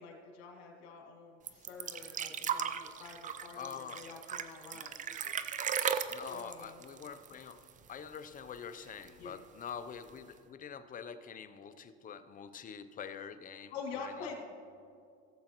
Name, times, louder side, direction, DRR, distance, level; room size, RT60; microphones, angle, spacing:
voice 1, 0.0-5.3 6.3-6.8 9.2-9.4 13.7-14.4, left 5 dB, 80° left, 0 dB, 2.5 m, -47 dB
sound 1, 1.5-7.9 8.1-8.2 8.6-9.3 10.1-10.2, right 8 dB, 25° right, 0.5 m, -37 dB
voice 2, 3.5-4.0 4.7-4.8 6.1-14.4, left 7 dB, 25° left, 11 dB, 0.6 m, -46 dB
17.0 x 7.5 x 3.0 m, 2.4 s
supercardioid pair, 110°, 31 cm